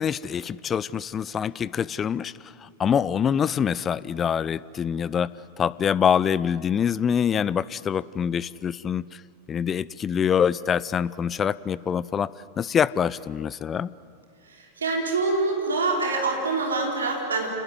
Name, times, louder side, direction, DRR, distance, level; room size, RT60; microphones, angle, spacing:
voice 1, 0.0-2.3 2.6-5.3 5.6-9.1 9.5-12.3 12.6-13.9, left 8 dB, 25° left, 20 dB, 0.6 m, -25 dB
voice 2, 14.6-17.5, right 3 dB, 70° right, 0 dB, 4.5 m, -25 dB
28.0 x 20.0 x 9.4 m, 2.6 s
figure-of-eight pair, 90°, 0 cm